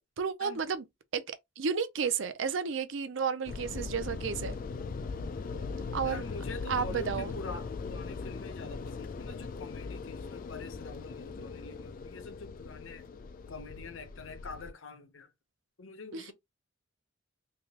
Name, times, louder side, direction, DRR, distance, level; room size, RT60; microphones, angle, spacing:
voice 1, 0.2-0.8 1.1-4.6 5.9-6.2 6.7-7.3 16.1-16.3, right 6 dB, 65° right, 0.5 m, -32 dB
sound 1, 3.5-14.7, left 4 dB, 40° left, 0.3 m, -40 dB
voice 2, 5.5-13.1 13.5-15.3 15.8-16.3, left 3 dB, 65° left, 0.7 m, -45 dB
3.3 x 2.8 x 2.8 m
head